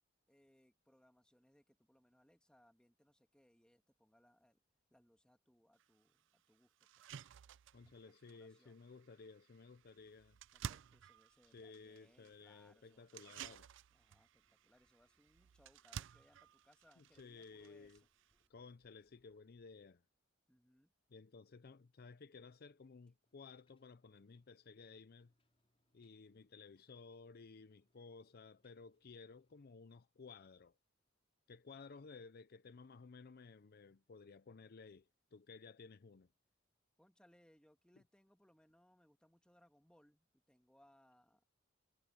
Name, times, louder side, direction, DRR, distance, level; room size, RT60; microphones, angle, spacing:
voice 1, 0.3-4.6 4.9-7.1 8.1-8.8 10.5-13.3 13.9-18.1 20.5-20.9 37.0-41.4, equal, 5° left, 1.6 m, -71 dB
sound 1, 5.8-5.9 6.3-6.4 6.8-18.5, right 8 dB, 65° right, 0.4 m, -54 dB
voice 2, 7.7-10.4 11.5-13.7 17.0-18.0 18.5-20.0 21.1-25.3 25.9-30.8 31.5-36.3, left 4 dB, 50° left, 0.5 m, -56 dB
sound 2, 9.4-19.9, equal, 10° right, 2.7 m, -86 dB
sound 3, 23.2-29.7, left 1 dB, 30° left, 5.5 m, -84 dB
head